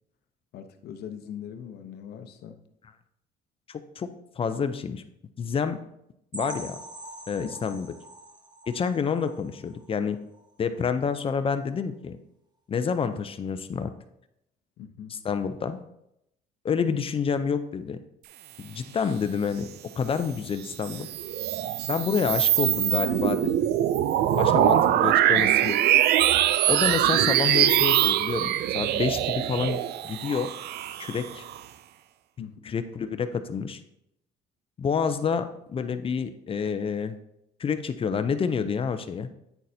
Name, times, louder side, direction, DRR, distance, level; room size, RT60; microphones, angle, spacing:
voice 1, 0.5-2.6 7.4-7.5 14.8-15.2 24.3-24.6 32.4-32.8, left 8 dB, 70° left, 8 dB, 0.8 m, -41 dB
voice 2, 3.7-4.1 4.4-5.0 5.4-5.8 6.3-6.8 7.3-7.9 8.7-10.2 10.6-12.2 12.7-13.9 15.1-15.8 16.6-18.0 18.6-19.7 20.0-21.1 21.9-23.7 24.4-25.8 26.7-28.5 28.7-29.8 30.0-30.5 31.0-31.4 32.6-33.8 34.8-37.2 37.6-39.3, left 6 dB, 35° left, 10 dB, 0.6 m, -28 dB
sound 1, 6.3-10.0 10.3-10.5 10.9-11.0 11.4-11.5, right 1 dB, 25° right, 1.0 m, -43 dB
sound 2, 20.7-31.6, right 12 dB, 75° right, 0.4 m, -23 dB
9.1 x 6.4 x 2.7 m, 0.80 s
cardioid pair, 110°, 17 cm